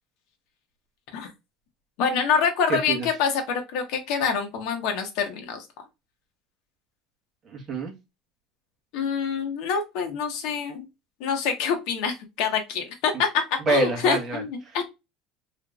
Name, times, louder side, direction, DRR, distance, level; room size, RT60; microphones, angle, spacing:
voice 1, 2.0-5.6 8.9-10.9 11.2-14.8, left 6 dB, 65° left, 1.1 m, -26 dB
voice 2, 2.7-3.1 7.5-7.9 13.7-14.4, right 2 dB, 25° right, 1.3 m, -25 dB
3.2 x 3.0 x 2.3 m
cardioid pair, 160°, 0 cm